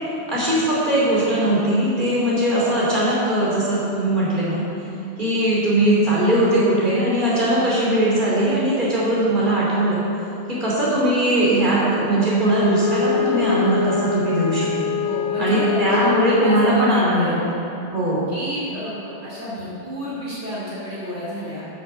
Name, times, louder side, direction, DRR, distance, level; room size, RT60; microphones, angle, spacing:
voice 1, 0.3-4.6 5.2-10.0 10.5-14.9 15.4-17.4 17.9-18.3, right 1 dB, 45° right, -7 dB, 3.2 m, -20 dB
Wind instrument woodwind instrument, 12.3-16.9, left 8 dB, 80° left, 1.0 m, -25 dB
voice 2, 15.0-17.4 18.3-21.6, equal, 65° right, -7 dB, 3.1 m, -30 dB
9.7 x 8.2 x 6.9 m, 2.9 s
omnidirectional pair, 1.2 m